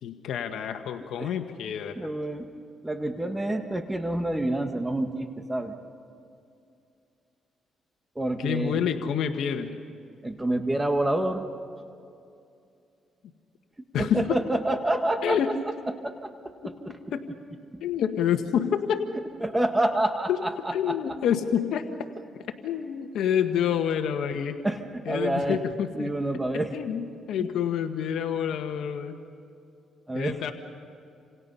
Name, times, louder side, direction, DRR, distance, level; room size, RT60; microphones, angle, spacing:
voice 1, 0.0-2.0 8.4-9.8 13.9-14.4 15.2-15.6 16.6-16.8 17.1-17.3 17.8-19.0 20.3-20.4 20.7-21.9 22.6-24.6 25.0-26.1 26.5-29.2 30.1-30.5, left 8 dB, 75° left, 6 dB, 1.4 m, -28 dB
voice 2, 1.9-2.5 2.8-5.7 8.1-8.8 10.2-11.4 14.0-15.4 16.0-16.3 16.6-16.7 19.4-21.0 24.6-25.6 25.9-26.7 30.1-30.4, right 1 dB, 15° right, 6 dB, 1.7 m, -27 dB
28.5 x 27.0 x 5.6 m, 2.5 s
cardioid pair, 90°, 0 cm